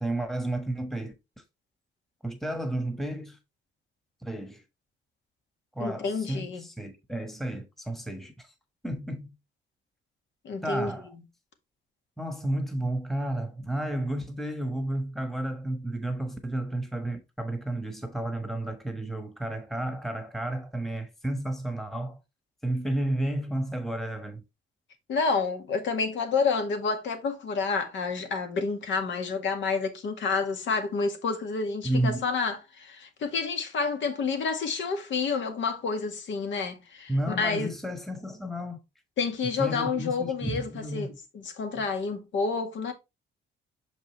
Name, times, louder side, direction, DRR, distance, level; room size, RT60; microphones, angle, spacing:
voice 1, 0.0-1.4 2.2-3.4 4.2-4.6 5.7-8.5 8.8-9.3 10.6-11.1 12.2-22.2 22.6-24.4 31.8-32.2 37.1-38.8 39.6-41.1 41.8-41.9, right 1 dB, ahead, 1.3 m, -32 dB
voice 2, 5.8-6.6 10.4-10.9 25.1-37.7 39.2-42.9, left 4 dB, 70° left, 1.9 m, -29 dB
6.5 x 5.4 x 3.1 m
cardioid pair, 90°, 20 cm